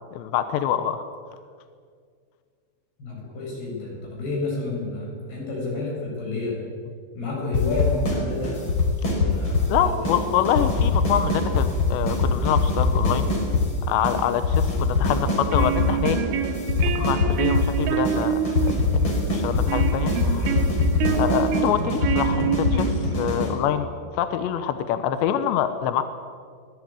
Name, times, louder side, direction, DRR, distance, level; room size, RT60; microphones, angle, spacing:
voice 1, 0.1-1.0 9.7-13.3 13.8-16.2 16.8-18.4 18.6-20.5 21.2-23.9 24.1-26.0, left 10 dB, 75° left, 9 dB, 3.1 m, -25 dB
voice 2, 3.0-6.6 7.1-8.6 9.1-10.2, left 3 dB, 55° left, -3 dB, 9.6 m, -30 dB
sound 1, 7.5-8.2 8.4-9.7 10.0-10.2 10.5-13.7 14.0-14.2 14.4-16.2 16.4-17.7 18.0-18.2 18.5-23.5, left 3 dB, 25° left, 5.3 m, -23 dB
sound 2, 15.3-23.3, right 9 dB, 90° right, 4.0 m, -27 dB
24.0 x 18.5 x 9.0 m, 2.1 s
omnidirectional pair, 5.4 m